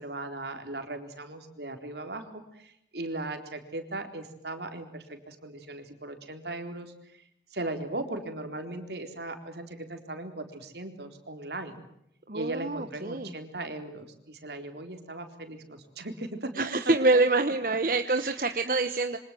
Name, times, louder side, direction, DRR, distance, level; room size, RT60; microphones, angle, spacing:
voice 1, 0.0-7.2 7.5-11.8 12.3-17.2 18.1-18.8, right 2 dB, 75° right, 6 dB, 4.0 m, -38 dB
voice 2, 12.3-13.3 16.6-19.2, right 3 dB, 50° right, 8 dB, 1.2 m, -26 dB
27.5 x 25.0 x 7.7 m, 0.76 s
head